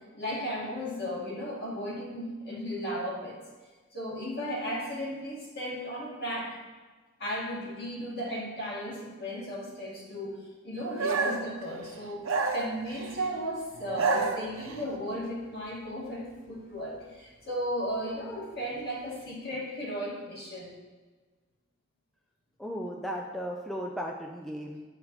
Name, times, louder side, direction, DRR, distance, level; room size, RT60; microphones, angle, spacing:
voice 1, 0.1-3.4 3.9-6.6 7.2-20.7, equal, 55° left, -5 dB, 2.1 m, -35 dB
sound 1, 11.0-11.5 12.2-13.2 13.8-14.8, right 4 dB, 80° right, 0.7 m, -29 dB
voice 2, 22.6-24.8, equal, ahead, -1 dB, 0.4 m, -36 dB
8.8 x 4.9 x 3.2 m, 1.3 s
head